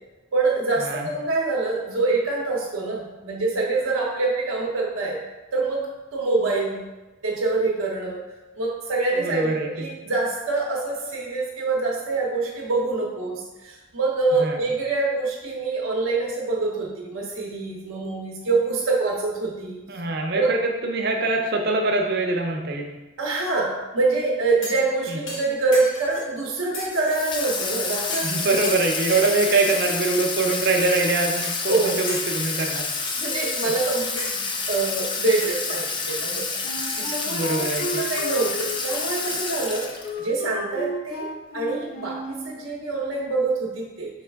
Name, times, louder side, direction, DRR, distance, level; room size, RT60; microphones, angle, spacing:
voice 1, 0.3-5.2 5.5-5.9 6.1-6.8 7.2-8.2 8.6-9.5 9.8-19.8 20.4-20.5 23.2-28.5 31.7-32.0 33.2-36.4 36.9-37.7 37.9-39.9 40.2-41.3 41.5-44.1, right 3 dB, 85° right, -3 dB, 0.8 m, -25 dB
voice 2, 9.1-9.9 14.4-14.6 19.9-22.9 25.1-25.2 28.2-32.9 33.6-33.7 37.3-38.0, right 3 dB, 55° right, 2 dB, 0.7 m, -24 dB
sound 1, 24.6-24.9 25.3-26.3 26.7-27.6 28.1-28.4 28.6-29.3 29.7-30.2 30.8-31.0 31.4-31.8 32.1-32.5 33.0-33.6 34.2-35.5 35.8-35.9, left 1 dB, 70° left, 1.1 m, -37 dB
Water tap faucet / Sink (filling or washing), 27.1-40.2, left 4 dB, 25° left, 0.4 m, -29 dB
Wind instrument woodwind instrument, 36.6-42.5, equal, 45° left, 0.8 m, -34 dB
4.8 x 3.2 x 3.4 m, 1.1 s
head